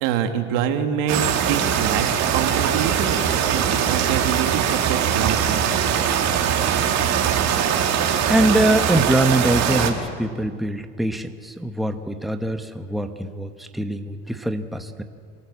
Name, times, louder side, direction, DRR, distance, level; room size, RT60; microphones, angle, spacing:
voice 1, 0.0-2.1 2.3-6.2, right 8 dB, 75° right, 6 dB, 2.0 m, -26 dB
sound 1, 1.1-9.9, right 8 dB, 55° right, 2.4 m, -21 dB
voice 2, 8.2-15.0, right 1 dB, ahead, 7 dB, 1.1 m, -23 dB
26.0 x 14.0 x 7.5 m, 2.1 s
supercardioid pair, 90°, 33 cm